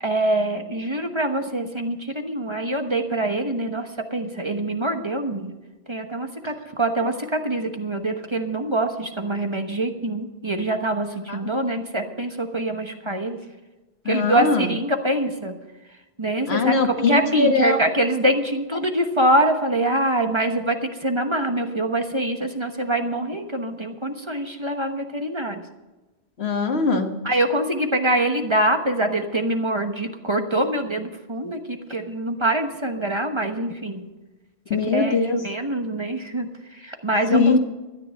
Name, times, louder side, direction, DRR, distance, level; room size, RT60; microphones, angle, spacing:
voice 1, 0.0-5.5 5.9-13.4 14.1-15.6 16.2-16.8 17.1-25.6 27.2-34.1 34.9-37.5, right 1 dB, 30° right, 5 dB, 1.2 m, -24 dB
voice 2, 14.0-14.7 16.5-17.8 26.4-27.1 34.7-35.4 37.3-37.6, left 4 dB, 75° left, 5 dB, 1.6 m, -21 dB
13.5 x 9.7 x 6.5 m, 1.1 s
omnidirectional pair, 1.1 m